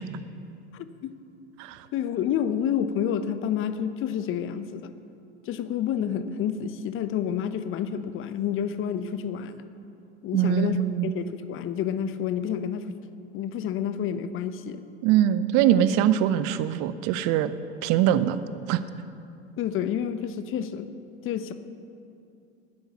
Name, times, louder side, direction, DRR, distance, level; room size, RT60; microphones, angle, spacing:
voice 1, 0.7-1.1 1.9-4.9 5.5-9.6 10.2-13.0 13.3-14.8 19.6-20.9 21.2-21.5, left 8 dB, 40° left, 11 dB, 0.9 m, -29 dB
voice 2, 10.3-11.1 15.0-17.5 17.8-18.4 18.7-18.8, right 10 dB, 50° right, 14 dB, 0.8 m, -22 dB
13.0 x 10.5 x 7.3 m, 2.6 s
hypercardioid pair, 80°, 33 cm